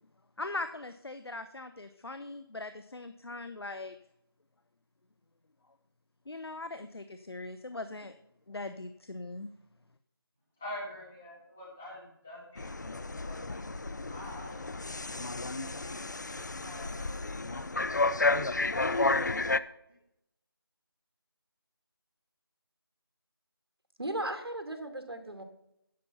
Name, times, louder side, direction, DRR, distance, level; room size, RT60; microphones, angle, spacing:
voice 1, 0.4-4.0 6.3-8.1 8.5-9.5, left 2 dB, 80° left, 10 dB, 0.8 m, -40 dB
voice 2, 10.6-13.6 14.1-17.1 17.5-17.8 18.5-19.2, left 1 dB, 5° left, -8 dB, 0.6 m, -47 dB
sound 1, 12.6-19.6, left 3 dB, 50° left, 0.4 m, -31 dB
voice 3, 24.0-25.4, right 1 dB, 80° right, 6 dB, 2.2 m, -36 dB
10.5 x 6.9 x 5.6 m, 0.80 s
figure-of-eight pair, 170°, 13 cm